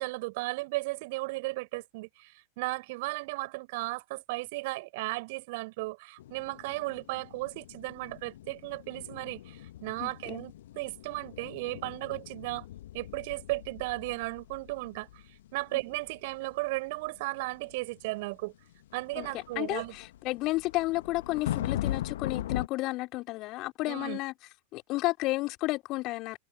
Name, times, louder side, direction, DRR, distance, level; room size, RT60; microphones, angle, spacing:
voice 1, 0.0-12.7 12.9-15.1 15.5-18.5 18.9-19.9 23.9-24.2, right 23 dB, 50° right, 6.8 m, -35 dB
sound 1, 6.2-22.7, left 13 dB, 60° left, 1.7 m, -40 dB
voice 2, 10.0-10.5 19.2-19.3 19.6-24.3 24.7-26.4, left 20 dB, 40° left, 4.3 m, -32 dB
figure-of-eight pair, 90°, 0 cm